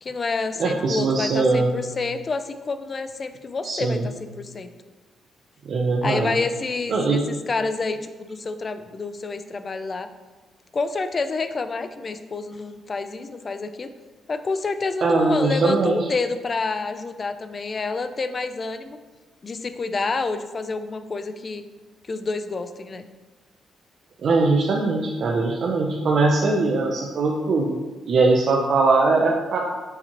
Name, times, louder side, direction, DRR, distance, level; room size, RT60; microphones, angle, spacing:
voice 1, 0.0-4.7 6.0-10.1 10.7-13.9 14.3-19.0 19.4-21.6 22.1-23.0, left 3 dB, 35° left, 10 dB, 0.3 m, -28 dB
voice 2, 0.6-1.7 3.6-4.0 5.7-6.3 6.9-7.2 15.0-15.9 24.2-27.8 28.1-29.6, right 3 dB, 55° right, -1 dB, 0.5 m, -21 dB
6.4 x 2.8 x 3.0 m, 1.3 s
cardioid pair, 100°, 0 cm